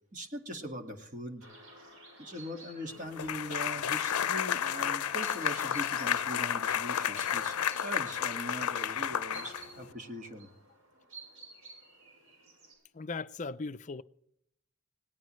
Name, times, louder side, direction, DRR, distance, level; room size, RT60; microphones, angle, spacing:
voice 1, 0.1-1.5 2.2-10.5, equal, 35° right, 2.0 m, -41 dB
sound 1, 1.4-12.7, right 2 dB, 65° right, 7.2 m, -53 dB
Wind instrument woodwind instrument, 1.8-5.4 5.8-9.9, right 1 dB, 5° left, 3.3 m, -58 dB
sound 2, 3.2-9.9, left 9 dB, 85° left, 0.6 m, -31 dB
voice 2, 12.9-14.0, left 3 dB, 35° left, 0.5 m, -38 dB
20.0 x 18.5 x 3.2 m
head